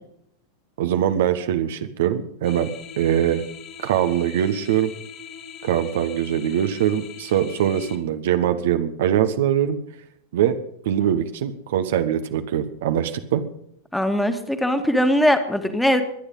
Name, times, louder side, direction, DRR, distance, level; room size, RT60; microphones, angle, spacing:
voice 1, 0.8-2.7 3.0-3.4 3.8-4.9 5.6-9.8 10.3-10.6 10.8-13.4, right 10 dB, 55° right, 8 dB, 1.3 m, -22 dB
sound 1, 2.4-8.0, left 7 dB, 35° left, 3.2 m, -41 dB
voice 2, 13.9-16.0, equal, 5° left, 7 dB, 2.1 m, -20 dB
22.5 x 10.0 x 5.6 m, 0.72 s
figure-of-eight pair, 90°, 0 cm